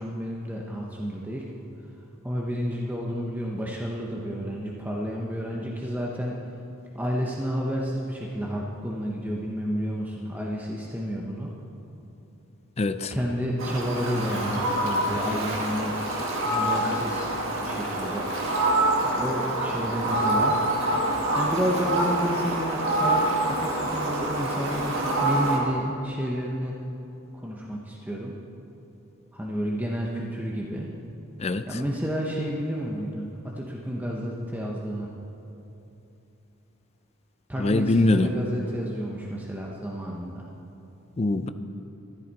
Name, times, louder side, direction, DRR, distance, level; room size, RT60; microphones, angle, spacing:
voice 1, 0.0-1.5 2.2-6.4 6.9-11.5 13.1-16.0 16.4-18.3 19.0-20.6 21.3-26.8 27.3-28.3 29.3-30.9 31.7-35.1 37.5-40.5, equal, 10° right, -3 dB, 0.8 m, -31 dB
voice 2, 12.8-13.1 31.4-31.6 37.6-38.3 41.2-41.5, left 2 dB, 30° left, 10 dB, 0.4 m, -23 dB
Fowl, 13.6-25.6, right 1 dB, 60° right, 1.9 m, -26 dB
13.5 x 11.5 x 4.1 m, 2.9 s
head